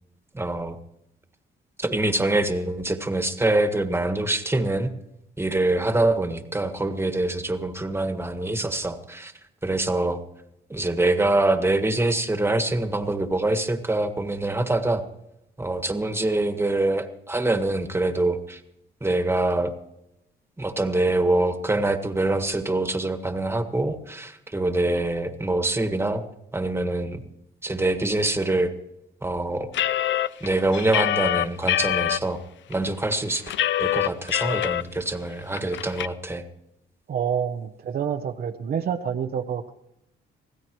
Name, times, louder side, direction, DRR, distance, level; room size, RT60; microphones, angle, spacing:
voice 1, 0.3-0.8 1.8-4.9 5.4-9.3 9.6-10.2 10.7-15.0 15.6-18.6 19.0-19.7 20.6-26.2 26.5-27.2 27.6-28.7 29.2-29.7 30.4-32.4 32.7-33.4 33.8-36.4, right 2 dB, 10° right, 8 dB, 1.5 m, -24 dB
sound 1, 29.7-32.2 32.7-32.8 33.1-34.8 35.2-35.3 35.6-36.1, left 12 dB, 70° left, 0.5 m, -24 dB
voice 2, 37.1-39.7, right 8 dB, 50° right, 4 dB, 0.8 m, -27 dB
24.0 x 16.0 x 3.1 m, 0.83 s
cardioid pair, 90°, 20 cm